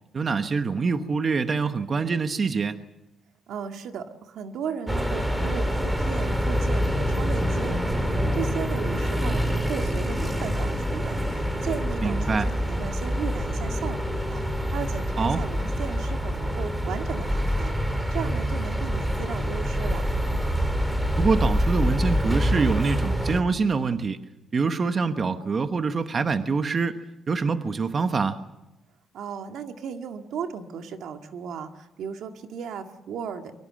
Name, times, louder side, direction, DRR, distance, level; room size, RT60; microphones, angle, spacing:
voice 1, 0.1-2.8 12.0-12.5 15.2-15.4 21.2-24.2 24.5-27.0 27.3-28.4, right 4 dB, 40° right, 8 dB, 1.2 m, -25 dB
voice 2, 3.5-20.1 29.1-33.5, right 7 dB, 80° right, 5 dB, 2.0 m, -36 dB
sound 1, 4.9-23.4, equal, 10° right, 3.3 m, -26 dB
23.5 x 23.0 x 7.7 m, 0.97 s
cardioid pair, 90°, 0 cm